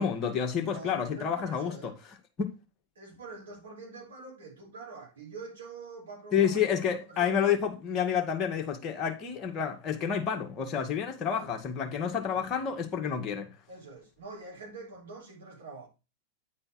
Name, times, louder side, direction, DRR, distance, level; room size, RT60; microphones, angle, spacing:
voice 1, 0.0-1.9 6.3-13.5, left 8 dB, 30° left, 1.8 m, -29 dB
voice 2, 0.6-1.9 3.0-7.5 11.2-11.5 12.3-12.4 13.7-15.9, right 3 dB, 65° right, 3.6 m, -45 dB
9.4 x 4.3 x 4.5 m
figure-of-eight pair, 90°, 0 cm